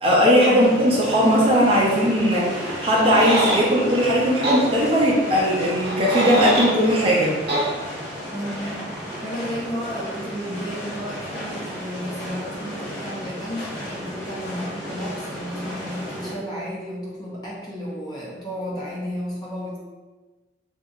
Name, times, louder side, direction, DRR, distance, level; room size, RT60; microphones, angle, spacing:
voice 1, 0.0-7.3, equal, 30° right, -5 dB, 0.6 m, -18 dB
sound 1, 0.6-16.3, equal, 65° left, 0.9 m, -34 dB
sound 2, 2.9-3.6 4.4-4.6 5.8-6.7 7.5-7.7, right 1 dB, 70° right, 0.9 m, -23 dB
voice 2, 8.3-19.8, equal, 25° left, -5 dB, 0.4 m, -32 dB
2.8 x 2.6 x 2.4 m, 1.3 s
head